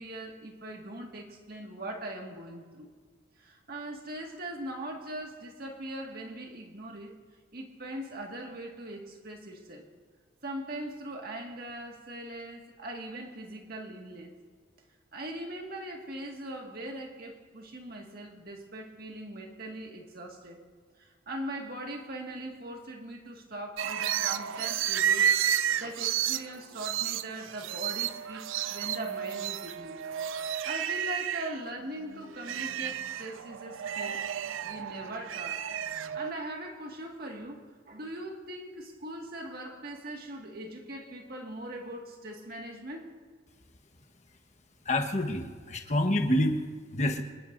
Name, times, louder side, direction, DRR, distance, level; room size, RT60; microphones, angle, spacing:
voice 1, 0.0-2.9 3.4-7.2 7.5-9.9 10.4-14.3 15.1-20.6 21.0-25.3 25.8-30.0 30.6-34.2 34.6-35.7 36.1-43.1, right 1 dB, 50° right, 2.0 m, -40 dB
sound 1, 23.8-31.6 32.0-36.3, right 9 dB, 80° right, 0.5 m, -31 dB
voice 2, 44.8-46.6 46.9-47.2, left 1 dB, 35° left, 1.3 m, -27 dB
26.5 x 19.5 x 2.7 m
head